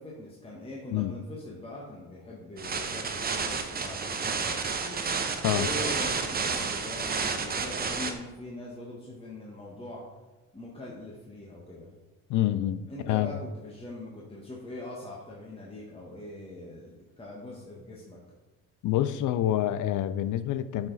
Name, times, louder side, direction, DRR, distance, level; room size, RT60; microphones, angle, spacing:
voice 1, 0.0-10.0 10.5-11.9 12.9-18.2, left 1 dB, 15° left, 1.2 m, -42 dB
sound 1, 2.6-8.1, right 5 dB, 25° right, 0.7 m, -30 dB
voice 2, 12.3-13.3 18.8-20.9, left 12 dB, 55° left, 0.5 m, -27 dB
7.4 x 4.8 x 4.0 m
cardioid pair, 100°, 39 cm